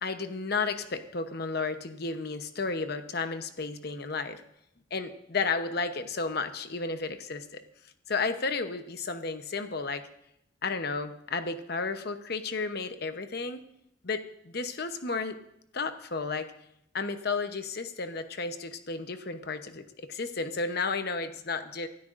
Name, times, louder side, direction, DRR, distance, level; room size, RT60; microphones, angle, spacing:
voice 1, 0.0-4.4 4.9-7.6 8.1-10.1 10.6-13.6 14.0-15.4 15.7-16.5 16.9-21.9, left 4 dB, 55° left, 9 dB, 0.9 m, -33 dB
24.5 x 12.5 x 2.6 m, 0.76 s
head